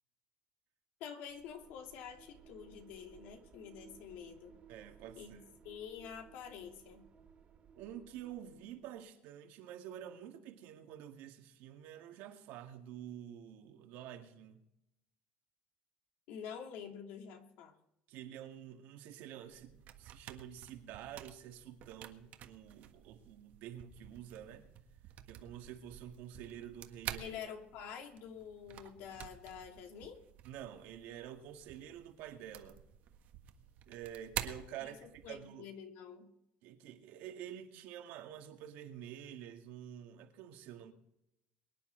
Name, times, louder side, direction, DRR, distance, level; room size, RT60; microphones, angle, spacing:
voice 1, 1.0-4.6 5.2-7.0 16.3-17.7 27.2-30.2 34.8-36.3, left 7 dB, 80° left, 2.8 m, -48 dB
sound 1, 1.3-9.1, right 6 dB, 40° right, 2.1 m, -60 dB
voice 2, 4.7-5.5 7.7-14.6 18.1-24.7 25.3-27.4 30.4-32.8 33.9-35.7 36.6-40.9, right 10 dB, 80° right, 2.0 m, -49 dB
sound 2, 19.5-35.4, right 10 dB, 60° right, 1.5 m, -49 dB
23.5 x 10.5 x 3.9 m
cardioid pair, 130°, 3 cm